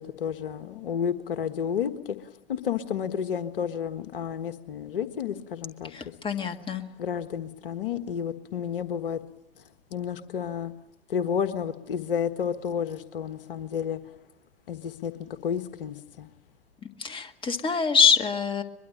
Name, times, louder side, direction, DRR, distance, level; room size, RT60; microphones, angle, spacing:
voice 1, 0.0-6.1 7.0-9.2 9.6-9.7 9.9-10.7 11.1-14.1 14.7-16.3, left 8 dB, 60° left, 11 dB, 1.5 m, -31 dB
voice 2, 5.9-6.8 16.8-18.6, left 6 dB, 15° left, 6 dB, 1.8 m, -25 dB
23.0 x 22.5 x 8.9 m, 0.86 s
figure-of-eight pair, 95°, 30 cm